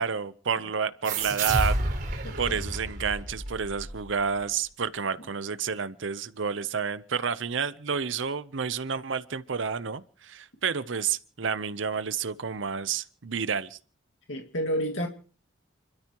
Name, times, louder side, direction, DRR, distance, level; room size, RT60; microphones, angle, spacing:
voice 1, 0.0-1.8 2.0-13.8, right 6 dB, 75° right, 0.7 m, -30 dB
sound 1, 1.0-4.3, right 2 dB, 45° right, 4.6 m, -30 dB
voice 2, 14.3-15.1, equal, 80° left, 2.0 m, -29 dB
29.5 x 13.0 x 3.0 m
head